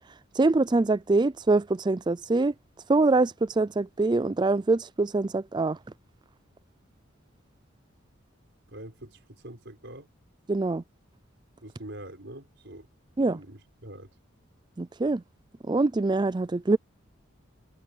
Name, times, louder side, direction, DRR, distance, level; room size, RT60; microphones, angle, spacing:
voice 1, 0.4-2.5 2.9-5.8 10.5-10.8 13.2-13.4 14.8-15.2 15.6-16.8, right 3 dB, 20° right, 0.4 m, -24 dB
voice 2, 8.7-10.1 11.6-12.9 13.3-14.1, right 1 dB, 60° right, 6.1 m, -44 dB
head